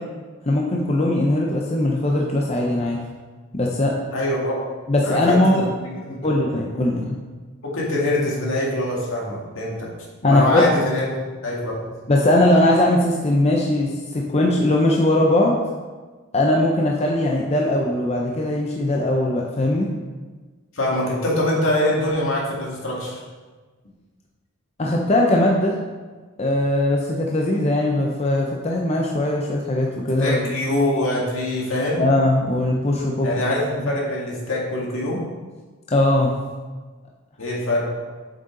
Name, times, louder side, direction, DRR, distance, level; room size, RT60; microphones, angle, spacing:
voice 1, 0.5-3.0 3.5-4.0 4.9-5.7 6.2-7.2 10.2-10.7 12.1-15.6 16.3-19.9 24.8-25.8 26.4-30.4 32.0-33.3 33.8-33.9 35.9-36.3, left 1 dB, 30° left, -1 dB, 0.6 m, -20 dB
voice 2, 4.1-4.6 5.0-5.7 6.0-6.2 7.6-9.9 10.2-11.1 11.4-11.9 20.7-23.2 30.2-32.0 33.2-35.2 37.4-37.9, left 1 dB, 70° left, -3 dB, 2.1 m, -23 dB
7.6 x 6.8 x 3.8 m, 1.4 s
head